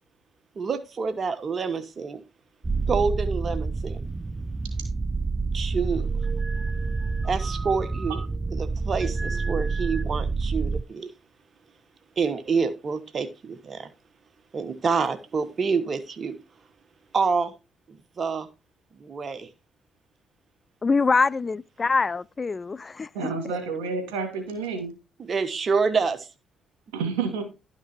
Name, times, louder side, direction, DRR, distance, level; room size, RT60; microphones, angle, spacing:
voice 1, 0.6-2.2 2.9-4.0 5.5-6.1 7.2-8.2 8.5-11.1 12.2-13.9 14.5-16.4 17.1-17.5 17.9-18.5 19.0-19.5 21.8-21.9 25.2-26.3, right 5 dB, 45° right, 1.1 m, -27 dB
sound 1, 2.6-10.8, right 4 dB, 30° right, 0.5 m, -28 dB
voice 2, 20.8-23.1, left 4 dB, 35° left, 0.4 m, -24 dB
voice 3, 23.1-24.9 26.9-27.4, right 4 dB, 85° right, 2.8 m, -29 dB
11.5 x 6.0 x 4.3 m
supercardioid pair, 55°, 0 cm